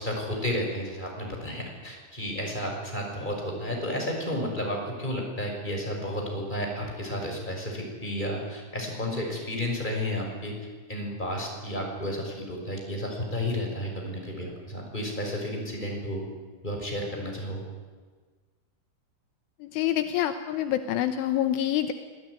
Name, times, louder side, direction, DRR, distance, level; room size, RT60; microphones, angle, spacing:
voice 1, 0.0-10.5 10.9-16.3 16.6-17.6, left 1 dB, 10° left, 1 dB, 5.6 m, -32 dB
voice 2, 19.6-21.9, left 11 dB, 80° left, 9 dB, 3.3 m, -26 dB
25.5 x 19.0 x 9.8 m, 1.4 s
omnidirectional pair, 5.9 m